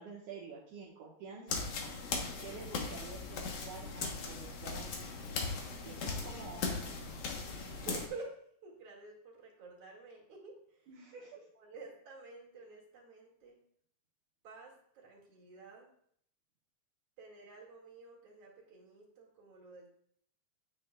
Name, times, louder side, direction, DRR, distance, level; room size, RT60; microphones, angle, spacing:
voice 1, 0.0-1.6 2.4-4.9 5.8-7.2 10.9-11.4, right 5 dB, 65° right, -4 dB, 2.4 m, -49 dB
sound 1, 1.5-8.1, left 4 dB, 60° left, 1.6 m, -39 dB
voice 2, 7.6-10.9 11.6-13.6 14.4-15.9 17.2-19.9, right 3 dB, 45° right, -3 dB, 2.8 m, -50 dB
9.3 x 9.1 x 2.3 m, 0.66 s
omnidirectional pair, 4.1 m